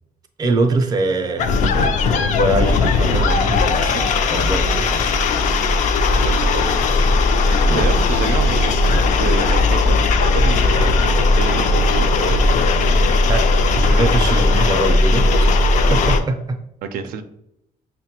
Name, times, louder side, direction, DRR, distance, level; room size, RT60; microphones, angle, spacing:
voice 1, 0.4-1.5 1.7-5.2 7.7-7.9 13.3-15.5 15.9-16.6, right 2 dB, 25° right, 4 dB, 0.5 m, -23 dB
sound 1, 1.4-16.2, left 3 dB, 55° left, 0.4 m, -17 dB
voice 2, 6.1-6.8 7.4-12.4 16.8-17.2, right 7 dB, 85° right, 8 dB, 0.4 m, -29 dB
sound 2, 6.3-14.7, left 1 dB, 80° left, 1.1 m, -35 dB
5.7 x 2.1 x 2.8 m, 0.79 s
cardioid pair, 145°, 15 cm